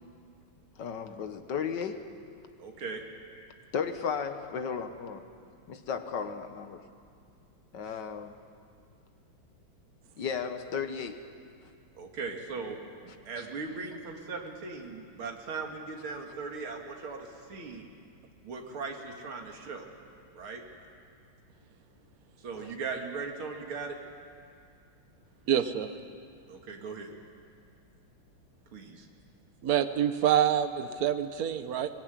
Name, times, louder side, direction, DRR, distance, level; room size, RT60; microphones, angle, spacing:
voice 1, 0.8-2.1 3.3-5.3 5.7-6.8 7.7-8.4 10.2-11.3 22.6-22.8, left 6 dB, 60° left, 1.8 m, -35 dB
voice 2, 2.6-3.0 12.0-12.8 13.0-17.9 18.4-19.8 20.3-20.6 22.4-24.0 26.5-27.1 28.7-29.1, right 4 dB, 75° right, 3.0 m, -38 dB
voice 3, 25.5-25.9 29.6-31.9, right 9 dB, 50° right, 1.4 m, -26 dB
23.0 x 20.5 x 9.2 m
omnidirectional pair, 2.3 m